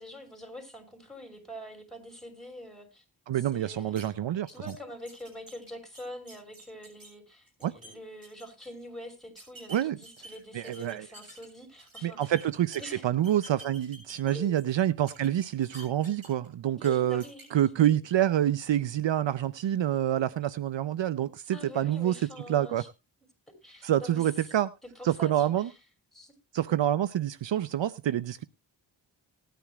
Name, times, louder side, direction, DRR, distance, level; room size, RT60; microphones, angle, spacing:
voice 1, 0.0-3.0 3.3-4.1 4.5-12.3 12.8-13.0 14.3-14.5 16.8-17.5 21.5-22.9 23.6-24.3 24.8-25.8 26.1-26.3, equal, ahead, 5.9 m, -45 dB
voice 2, 3.3-4.5 7.6-7.7 9.7-10.0 10.5-11.1 12.0-17.2 17.5-22.1 22.5-22.8 23.8-24.7 25.0-25.7 26.5-28.4, right 11 dB, 70° right, 0.7 m, -27 dB
sound 1, 4.0-4.1 4.5-4.8 5.1-7.1 7.5-7.9 8.2-8.7 9.4-11.5 11.8-12.9 13.2-14.7 15.1-16.5 16.8-16.9 17.2-17.4, right 1 dB, 45° right, 7.6 m, -49 dB
19.5 x 10.5 x 2.3 m
cardioid pair, 60°, 46 cm